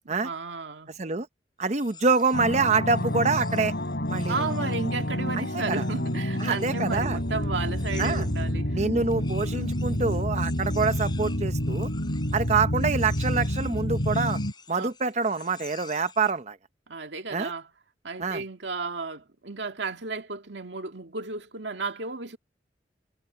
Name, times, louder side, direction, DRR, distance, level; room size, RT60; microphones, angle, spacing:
voice 1, 0.1-0.9 4.3-8.8 14.7-14.9 16.9-17.7 18.0-22.4, right 4 dB, 80° right, 2.1 m, -33 dB
sound 1, 1.6-8.6 9.1-16.4, left 6 dB, 25° left, 5.4 m, -49 dB
voice 2, 1.6-3.7 4.1-4.4 5.3-5.8 6.4-7.2 8.0-8.3 8.7-11.9 12.3-14.4 14.7-16.6 17.3-17.5 18.2-18.4, right 4 dB, 40° right, 0.9 m, -26 dB
sound 2, 2.3-14.5, equal, 70° left, 4.0 m, -28 dB
head